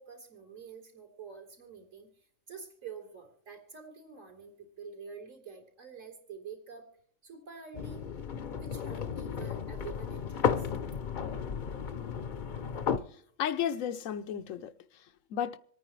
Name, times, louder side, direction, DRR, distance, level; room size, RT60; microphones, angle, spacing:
voice 1, 0.0-2.1 2.5-6.9 7.2-8.1 8.6-10.7, right 6 dB, 75° right, 3.4 m, -47 dB
sound 1, 7.7-13.0, left 7 dB, 50° left, 0.7 m, -33 dB
voice 2, 13.1-15.6, left 9 dB, 85° left, 1.1 m, -34 dB
26.5 x 9.3 x 3.2 m
omnidirectional pair, 1.3 m